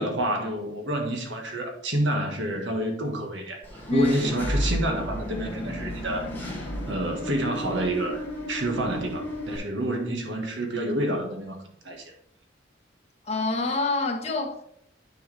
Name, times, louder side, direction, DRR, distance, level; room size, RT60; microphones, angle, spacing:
voice 1, 0.0-6.5 6.9-11.6 11.9-12.1, right 1 dB, 80° right, 1.6 m, -28 dB
Engine / Mechanisms, 3.6-9.6, equal, 10° left, 1.9 m, -32 dB
voice 2, 13.2-14.6, left 2 dB, 35° left, 1.3 m, -26 dB
9.5 x 4.9 x 3.4 m
head